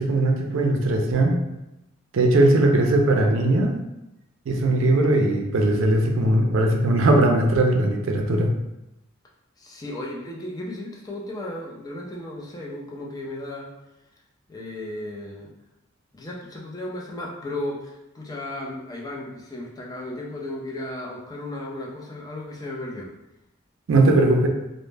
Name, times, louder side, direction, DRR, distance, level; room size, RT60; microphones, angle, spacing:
voice 1, 0.0-1.4 2.1-3.8 4.5-8.5 23.9-24.5, right 2 dB, 70° right, 2 dB, 0.4 m, -19 dB
voice 2, 9.6-13.7 14.5-15.5 16.1-23.1, left 1 dB, 20° left, -2 dB, 0.4 m, -35 dB
2.0 x 2.0 x 3.2 m, 0.93 s
head